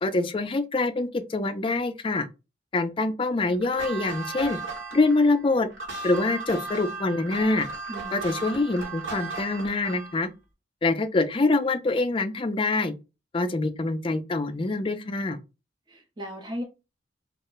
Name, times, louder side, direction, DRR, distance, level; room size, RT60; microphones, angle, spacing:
voice 1, 0.0-2.3 2.7-4.6 4.9-5.7 6.0-7.7 8.1-10.3 10.8-12.9 13.3-15.4, left 3 dB, 30° left, 0.4 m, -25 dB
sound 1, 3.6-10.2, right 4 dB, 80° right, 1.3 m, -36 dB
voice 2, 7.9-8.6 15.9-16.6, equal, 25° right, 0.6 m, -37 dB
2.4 x 2.1 x 3.8 m
head